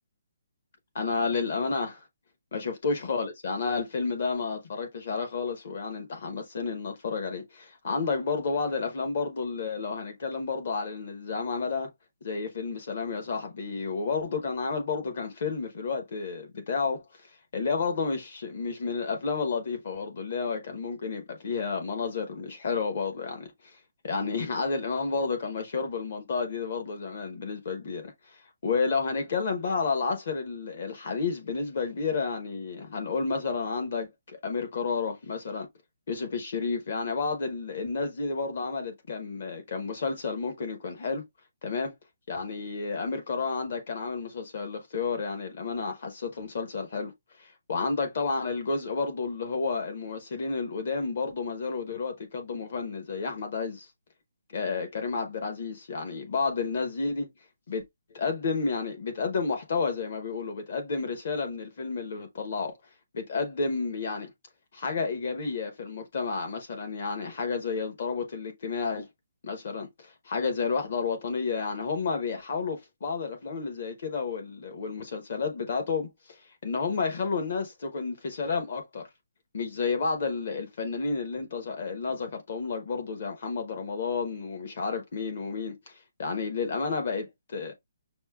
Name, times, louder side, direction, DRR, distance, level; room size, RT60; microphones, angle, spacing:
voice 1, 1.0-2.0 2.5-11.9 12.2-17.0 17.5-23.5 24.0-28.4 28.6-35.7 36.1-41.2 41.6-41.9 42.3-47.1 47.4-53.9 54.5-57.3 57.7-57.8 58.1-62.7 63.1-64.3 64.7-69.1 69.4-76.1 76.6-79.1 79.5-87.7, left 4 dB, 40° left, 0.8 m, -31 dB
6.0 x 2.1 x 2.3 m
hypercardioid pair, 180°, 0 cm